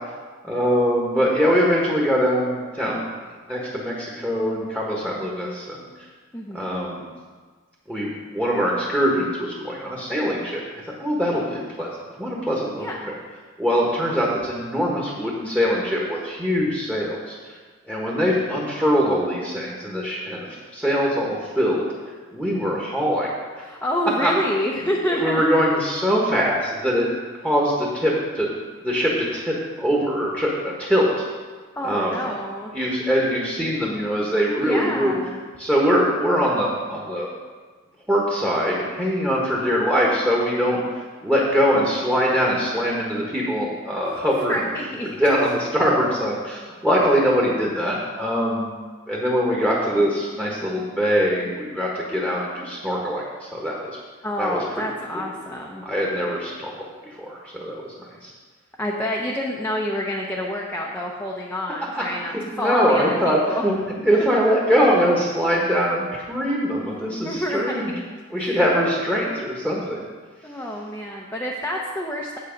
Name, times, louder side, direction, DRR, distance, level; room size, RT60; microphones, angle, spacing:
voice 1, 0.4-3.0 3.5-5.8 6.5-7.1 7.9-10.6 11.0-11.9 12.2-12.9 13.6-17.6 17.9-21.9 22.3-23.3 24.2-24.3 24.6-24.7 25.1-27.1 27.4-28.5 28.8-31.1 31.8-32.1 32.7-35.2 35.6-37.3 38.1-40.8 41.2-44.7 45.2-48.7 49.1-54.0 54.4-54.6 55.1-55.3 55.8-56.9 57.2-57.9 58.2-58.3 61.9-62.0 62.3-63.8 64.0-67.9 68.3-70.0, equal, 5° right, -4 dB, 1.3 m, -22 dB
voice 2, 6.3-6.8 12.8-13.1 23.6-25.4 31.8-32.7 34.6-35.4 44.0-44.1 44.5-45.1 54.2-55.8 58.8-63.7 64.1-64.2 67.2-67.8 68.4-68.6 70.4-72.4, equal, 10° left, -2 dB, 0.7 m, -28 dB
8.4 x 7.9 x 5.2 m, 1.5 s
head